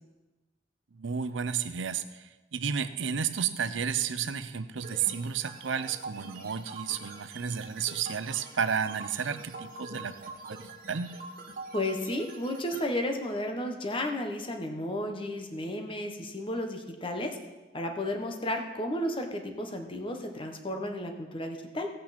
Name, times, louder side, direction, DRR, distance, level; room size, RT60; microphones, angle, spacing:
voice 1, 0.9-11.1, right 7 dB, 85° right, 12 dB, 0.6 m, -32 dB
sound 1, 4.8-12.8, right 3 dB, 50° right, 1.4 m, -44 dB
voice 2, 11.7-17.4 17.7-21.9, left 1 dB, 30° left, 4 dB, 1.2 m, -33 dB
15.5 x 8.5 x 4.3 m, 1.1 s
head